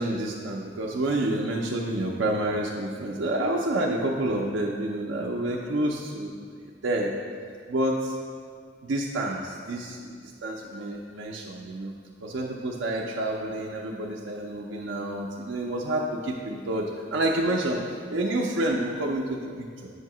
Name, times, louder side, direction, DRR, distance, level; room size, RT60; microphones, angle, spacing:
voice 1, 0.0-6.4 6.6-7.2 7.7-8.2 8.8-11.9 12.2-19.9, right 1 dB, 80° right, -1 dB, 0.5 m, -29 dB
7.8 x 2.7 x 5.9 m, 2.1 s
head